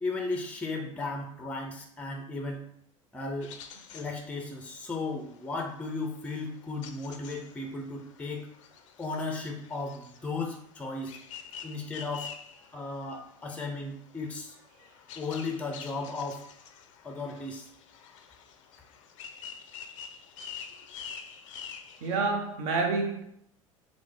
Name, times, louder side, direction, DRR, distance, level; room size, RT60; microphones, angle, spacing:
voice 1, 0.0-2.7 3.1-3.5 3.9-8.5 9.0-11.2 11.6-12.3 12.7-14.6 15.2-16.4 17.0-17.7, left 3 dB, 10° left, 0.5 m, -35 dB
sound 1, 3.4-22.2, left 7 dB, 65° left, 0.4 m, -48 dB
voice 2, 22.0-23.2, right 4 dB, 55° right, 0.7 m, -28 dB
2.9 x 2.0 x 3.6 m
figure-of-eight pair, 75°, 18 cm